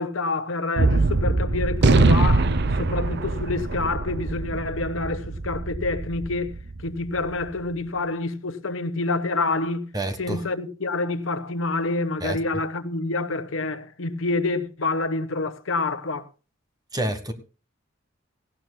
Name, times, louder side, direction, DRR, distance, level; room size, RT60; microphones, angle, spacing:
voice 1, 0.0-6.5 6.8-9.8 10.2-16.3, left 3 dB, 70° left, 1.2 m, -27 dB
Gunshot gunfire, 0.8-7.3, right 2 dB, 55° right, 0.7 m, -23 dB
voice 2, 9.9-10.4 12.2-12.4 16.9-17.3, right 1 dB, 20° right, 1.4 m, -28 dB
17.5 x 16.0 x 2.3 m
head